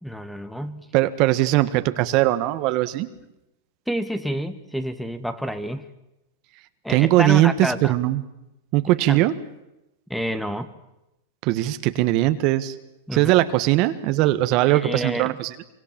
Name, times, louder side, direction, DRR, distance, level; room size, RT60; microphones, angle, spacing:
voice 1, 0.0-0.8 3.9-5.8 6.8-7.9 9.1-9.3 10.1-10.7 13.1-13.3 14.7-15.4, equal, ahead, 11 dB, 1.6 m, -29 dB
voice 2, 0.9-3.1 6.9-8.2 8.7-9.3 11.4-12.7 13.1-15.5, right 16 dB, 50° right, 11 dB, 1.5 m, -20 dB
26.0 x 24.5 x 7.6 m, 0.90 s
hypercardioid pair, 125°, 0 cm